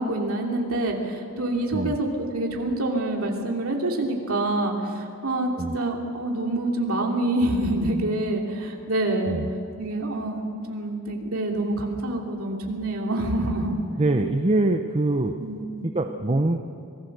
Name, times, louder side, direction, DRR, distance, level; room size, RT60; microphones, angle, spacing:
voice 1, 0.0-9.4 9.8-13.7 15.4-15.9, right 1 dB, 70° right, 0 dB, 3.0 m, -26 dB
voice 2, 14.0-15.4 15.8-16.6, right 2 dB, 30° right, 5 dB, 0.8 m, -23 dB
25.5 x 18.5 x 6.7 m, 2.5 s
head